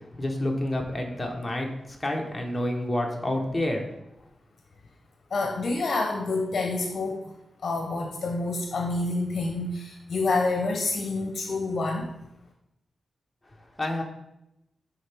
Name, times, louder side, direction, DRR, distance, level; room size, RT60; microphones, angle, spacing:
voice 1, 0.1-3.8 13.8-14.0, left 1 dB, 10° left, 0 dB, 1.0 m, -29 dB
voice 2, 5.3-7.3 7.6-12.1, left 3 dB, 50° left, 2 dB, 0.8 m, -28 dB
10.5 x 3.8 x 3.4 m, 0.85 s
wide cardioid pair, 165°, 0 cm